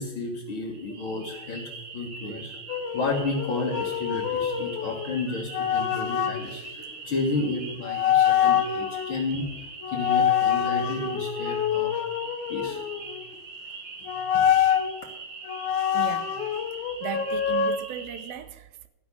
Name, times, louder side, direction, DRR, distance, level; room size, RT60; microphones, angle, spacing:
voice 1, 0.0-1.6 1.9-12.0 12.5-13.1 14.1-14.5 14.9-15.0, left 3 dB, 50° left, 0 dB, 1.6 m, -32 dB
sound 1, 0.7-18.3, right 3 dB, 50° right, 2.9 m, -42 dB
sound 2, 2.7-6.4 7.4-7.6 7.9-9.2 9.8-13.2 14.1-14.9 15.5-17.8, left 9 dB, 80° left, 1.7 m, -25 dB
voice 2, 15.9-16.7 17.0-18.9, right 10 dB, 80° right, 12 dB, 2.3 m, -37 dB
14.0 x 6.0 x 8.3 m, 0.95 s
omnidirectional pair, 4.4 m